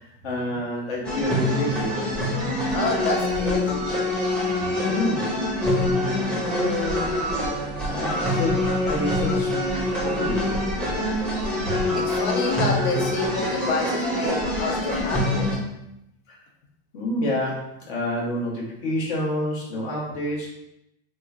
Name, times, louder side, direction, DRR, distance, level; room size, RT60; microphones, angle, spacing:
voice 1, 0.0-2.2 4.8-5.3 6.1-7.1 7.9-10.6 11.6-11.7 16.3-16.4 16.9-20.5, left 1 dB, 65° left, -4 dB, 1.3 m, -29 dB
sound 1, 1.0-15.6, left 1 dB, 5° left, 0.5 m, -25 dB
voice 2, 2.7-3.6 11.9-15.6, left 3 dB, 85° left, 1 dB, 0.8 m, -28 dB
3.1 x 3.0 x 2.5 m, 0.84 s
supercardioid pair, 140°, 33 cm